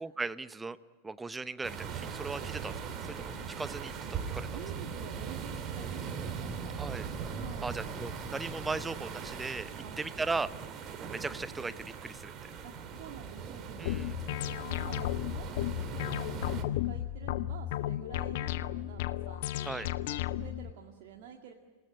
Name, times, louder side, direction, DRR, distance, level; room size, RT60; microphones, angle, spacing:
voice 1, 0.0-0.8 1.0-2.8 3.2-3.3 3.6-4.5 6.8-7.1 7.6-9.7 10.0-10.5 11.0-12.4 13.8-14.1 19.6-19.9, right 3 dB, 10° right, 16 dB, 0.8 m, -37 dB
sound 1, 1.6-16.6, right 6 dB, 30° right, 2.7 m, -40 dB
voice 2, 4.5-6.8 7.3-7.7 9.7-10.1 12.6-14.0 14.4-21.5, right 8 dB, 45° right, 1 dB, 1.9 m, -49 dB
sound 2, 13.9-20.7, left 14 dB, 50° left, 0.7 m, -34 dB
28.0 x 18.0 x 10.0 m, 1.5 s
figure-of-eight pair, 90°, 0 cm